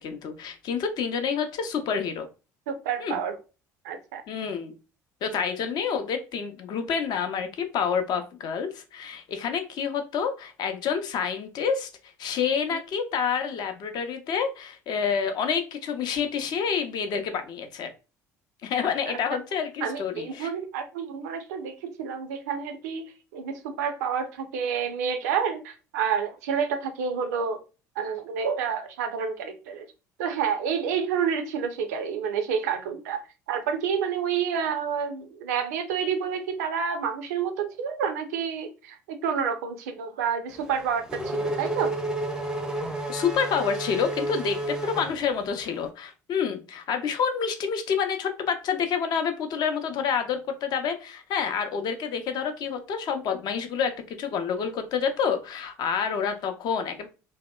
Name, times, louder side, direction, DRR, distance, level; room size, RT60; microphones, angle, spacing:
voice 1, 0.0-2.3 3.0-3.2 4.3-4.7 5.2-11.9 12.2-17.9 18.6-20.5 43.1-57.1, left 6 dB, 50° left, 0.5 m, -28 dB
voice 2, 2.7-3.4 3.8-4.2 12.7-12.8 19.8-27.6 28.0-29.9 30.2-33.2 33.5-41.9, right 7 dB, 70° right, 0.4 m, -29 dB
Race car auto racing / Accelerating revving vroom, 40.5-45.8, right 1 dB, 5° right, 0.5 m, -31 dB
2.7 x 2.1 x 2.2 m
figure-of-eight pair, 60°, 9 cm